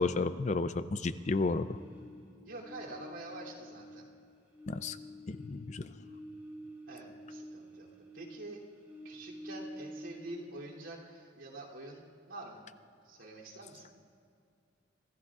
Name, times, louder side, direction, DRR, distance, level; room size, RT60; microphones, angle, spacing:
voice 1, 0.0-1.8 4.7-5.0 5.3-5.9, left 3 dB, 35° left, 12 dB, 0.4 m, -32 dB
sound 1, 1.7-4.2 4.5-8.4 8.7-10.4, equal, 10° right, 1.7 m, -48 dB
voice 2, 2.4-4.1 6.9-7.9 8.1-8.6 9.0-12.7 13.0-13.9, right 2 dB, 90° right, -5 dB, 2.9 m, -46 dB
26.0 x 14.0 x 2.4 m, 2.4 s
head